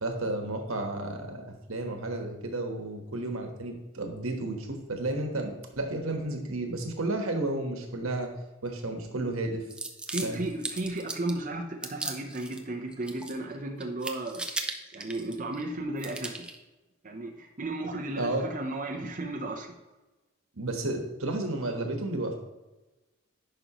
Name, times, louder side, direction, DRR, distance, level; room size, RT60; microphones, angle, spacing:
voice 1, 0.0-8.3 8.6-9.6 10.2-10.4 18.2-18.4 20.6-22.4, right 2 dB, 90° right, 3 dB, 1.3 m, -32 dB
sound 1, 9.7-11.4 11.8-12.6 12.9-13.6 13.8-15.6 16.0-16.6, right 2 dB, 5° right, 0.5 m, -37 dB
voice 2, 10.1-14.4 14.9-16.5 17.0-19.7, right 2 dB, 40° right, 2 dB, 0.7 m, -34 dB
10.5 x 5.3 x 3.0 m, 1.1 s
head